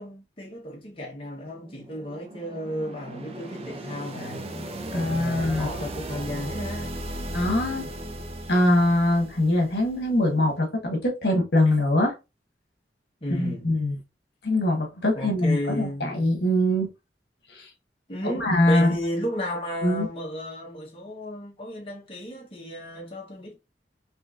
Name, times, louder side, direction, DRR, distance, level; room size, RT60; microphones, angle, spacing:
voice 1, 0.0-4.5 4.9-6.9 11.6-11.7 13.2-13.7 15.1-16.2 18.1-23.6, equal, 30° left, 1.1 m, -34 dB
sound 1, 1.5-10.3, right 1 dB, 35° right, 0.6 m, -36 dB
voice 2, 4.9-5.7 7.3-7.9 8.5-12.1 13.4-14.0 14.4-16.9 17.5-17.7 18.3-19.0 19.8-20.1, left 1 dB, 65° left, 1.3 m, -23 dB
4.2 x 3.0 x 2.5 m
head